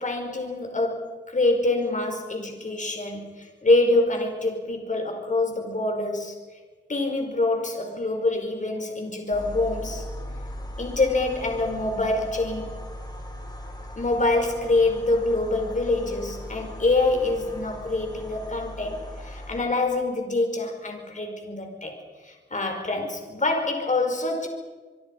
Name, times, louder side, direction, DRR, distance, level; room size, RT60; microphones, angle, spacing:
voice 1, 0.0-6.3 6.9-10.0 10.8-12.7 14.0-21.9 22.2-24.5, left 2 dB, 40° left, 3 dB, 5.1 m, -25 dB
sound 1, 9.3-19.6, equal, 20° left, 4.3 m, -39 dB
25.5 x 23.0 x 5.5 m, 1.4 s
wide cardioid pair, 105°, 20 cm